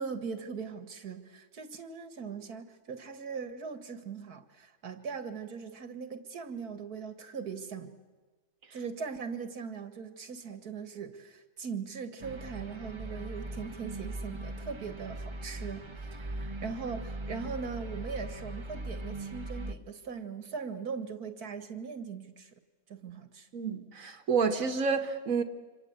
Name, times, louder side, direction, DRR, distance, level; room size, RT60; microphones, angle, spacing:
voice 1, 0.0-7.9 8.7-22.5 22.9-23.5, right 5 dB, 90° right, 2.4 m, -40 dB
sound 1, 12.2-19.7, right 1 dB, 20° right, 1.1 m, -40 dB
voice 2, 23.5-25.4, right 5 dB, 65° right, 1.7 m, -29 dB
28.0 x 26.0 x 8.2 m
omnidirectional pair, 1.6 m